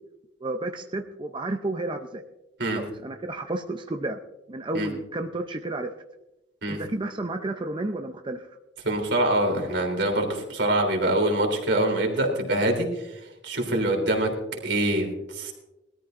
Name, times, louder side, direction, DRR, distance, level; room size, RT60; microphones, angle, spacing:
voice 1, 0.4-2.2 2.7-4.2 4.5-5.9 6.7-8.5, right 2 dB, 25° right, 5 dB, 0.6 m, -31 dB
voice 2, 8.8-15.5, right 1 dB, 75° right, 2 dB, 3.4 m, -25 dB
20.5 x 13.5 x 2.6 m, 0.94 s
head